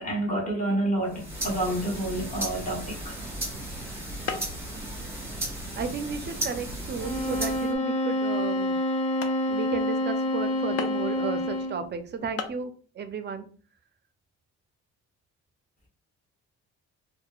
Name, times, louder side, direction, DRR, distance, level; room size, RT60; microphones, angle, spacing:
voice 1, 0.0-3.1, right 1 dB, 25° left, 0.9 m, -29 dB
sound 1, 1.0-7.8, right 1 dB, 5° right, 1.2 m, -35 dB
sound 2, 4.3-4.7 5.1-5.5 6.0-6.1 6.7-7.0 7.6-7.7 8.2-8.3 8.8-8.9 9.2-9.4 10.8-11.2 12.0-12.1 12.4-12.6, left 5 dB, 50° left, 0.5 m, -36 dB
voice 2, 5.8-8.7 9.5-12.7 13.0-13.5, right 5 dB, 35° right, 0.4 m, -33 dB
sound 3, 7.0-11.9, left 1 dB, 65° left, 0.9 m, -27 dB
2.8 x 2.1 x 2.3 m
cardioid pair, 90°, 30 cm